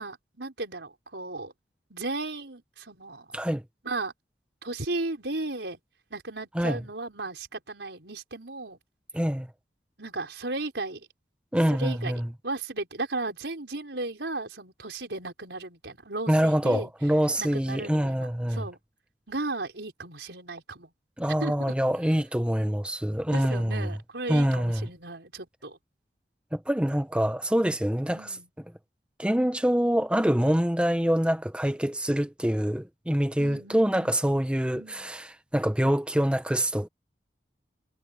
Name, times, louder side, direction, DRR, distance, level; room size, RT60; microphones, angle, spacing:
voice 1, 0.0-1.5 1.9-3.4 3.8-4.1 4.6-5.8 6.1-8.8 10.0-11.1 11.7-16.9 17.4-18.8 19.3-20.9 21.4-21.7 23.3-25.8 28.1-28.5 33.4-34.2 34.7-35.1, right 2 dB, 85° right, 4.7 m, -35 dB
voice 2, 9.1-9.5 11.5-12.3 16.3-18.6 21.2-23.9 24.3-24.9 26.5-28.4 29.2-36.9, equal, 5° right, 0.9 m, -25 dB
head